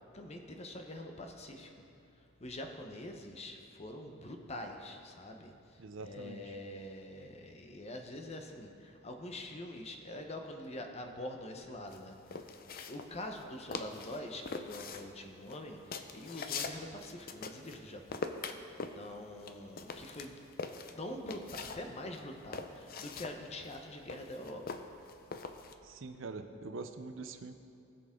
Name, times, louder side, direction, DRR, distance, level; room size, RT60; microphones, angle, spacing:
voice 1, 0.1-1.7 2.4-5.5 6.0-12.2 12.9-15.8 16.1-18.2 18.9-20.3 20.9-24.6, left 1 dB, 30° left, 4 dB, 0.9 m, -44 dB
voice 2, 5.8-6.5 25.8-27.5, right 3 dB, 70° right, 8 dB, 0.7 m, -44 dB
sound 1, 11.9-13.5 13.7-14.2 14.5-17.8 18.1-21.8 22.1-25.7, left 4 dB, 45° left, 0.6 m, -42 dB
19.5 x 6.9 x 3.7 m, 2.8 s
head